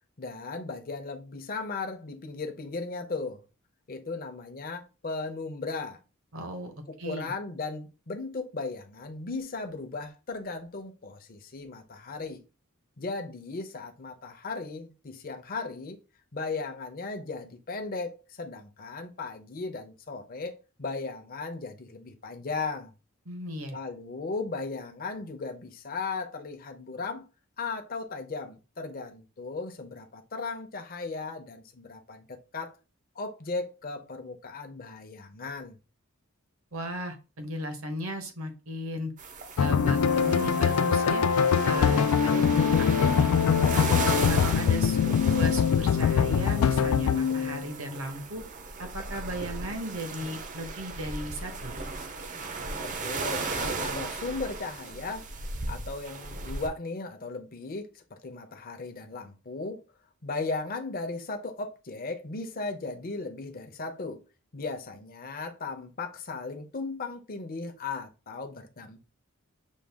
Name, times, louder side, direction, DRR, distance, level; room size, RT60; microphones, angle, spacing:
voice 1, 0.2-3.4 3.9-6.0 6.9-12.4 13.0-16.0 16.3-22.9 23.7-27.2 27.6-32.7 33.2-35.8 52.8-55.3 55.7-59.8 60.2-64.2 64.5-69.0, left 3 dB, 40° left, 0.7 m, -36 dB
voice 2, 6.3-6.7 7.0-7.3 23.3-23.8 36.7-39.1 39.6-41.2 41.6-43.3 43.7-43.9 44.3-48.4 48.8-51.7, equal, 65° right, 1.1 m, -36 dB
sound 1, 39.2-56.7, right 3 dB, 35° right, 0.6 m, -36 dB
sound 2, 39.6-47.6, left 7 dB, 85° left, 0.4 m, -23 dB
6.2 x 2.3 x 3.5 m
head